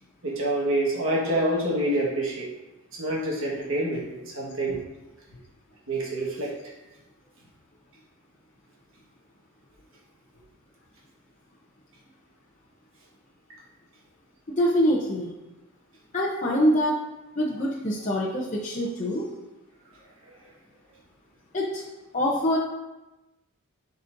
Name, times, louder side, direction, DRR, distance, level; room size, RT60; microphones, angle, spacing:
voice 1, 0.2-2.5 2.9-4.8 5.9-6.5, right 1 dB, 65° right, -5 dB, 1.6 m, -27 dB
voice 2, 14.5-15.3 16.1-16.9 17.3-19.3 21.5-21.8 22.1-22.6, equal, 35° left, -5 dB, 0.8 m, -24 dB
11.0 x 4.2 x 2.6 m, 1.0 s
head